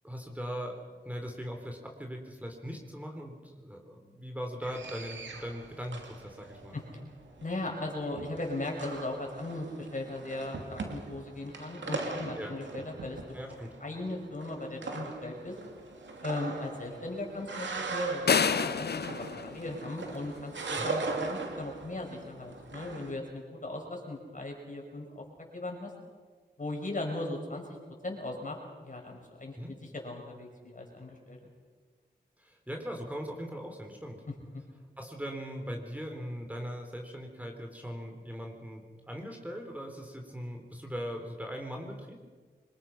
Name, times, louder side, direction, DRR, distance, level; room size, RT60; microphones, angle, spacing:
voice 1, 0.0-0.8 1.0-6.8 12.4-12.5 13.3-13.7 20.8-20.9 29.5-29.8 32.4-34.2 35.0-42.2, equal, 10° right, 2 dB, 3.7 m, -40 dB
sound 1, 4.6-23.1, right 3 dB, 85° right, 2.7 m, -40 dB
voice 2, 7.4-13.4 13.8-15.6 16.2-25.2 25.5-25.9 26.6-27.6 28.0-28.6 28.8-31.5, left 2 dB, 45° left, 1 dB, 5.9 m, -38 dB
sound 2, 18.3-20.4, left 6 dB, 65° left, 0.8 m, -29 dB
25.0 x 21.5 x 5.9 m, 1.5 s
cardioid pair, 65°, 18 cm